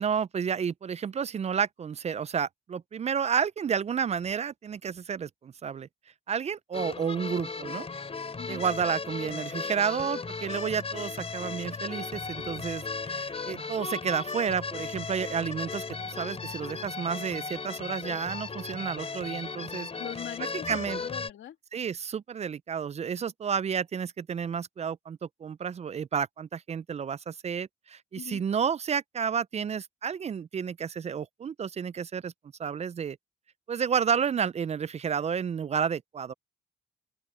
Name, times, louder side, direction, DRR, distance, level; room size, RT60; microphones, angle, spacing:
voice 1, 0.0-5.9 6.3-7.9 8.5-19.9 20.7-21.0 21.7-32.3 32.6-33.2 33.7-36.3, right 7 dB, 35° right, 0.4 m, -31 dB
sound 1, 6.7-21.3, left 4 dB, 30° left, 3.2 m, -36 dB
voice 2, 20.0-21.6 28.1-28.4, left 11 dB, 75° left, 2.8 m, -41 dB
open air
cardioid pair, 90°, 20 cm